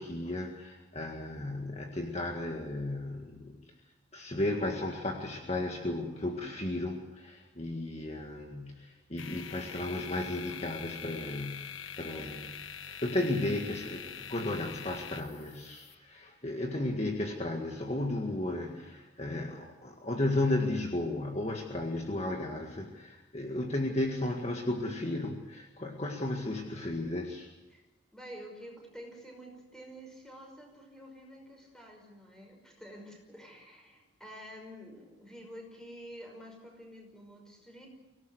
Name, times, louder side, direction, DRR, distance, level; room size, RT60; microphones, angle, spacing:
voice 1, 0.0-3.6 4.1-12.5 12.8-27.5, left 1 dB, 35° left, 2 dB, 1.9 m, -34 dB
sound 1, 9.2-16.0, left 8 dB, 80° left, 1.2 m, -44 dB
voice 2, 28.1-37.9, equal, 5° left, 2 dB, 5.6 m, -49 dB
25.0 x 17.5 x 8.0 m, 1.1 s
head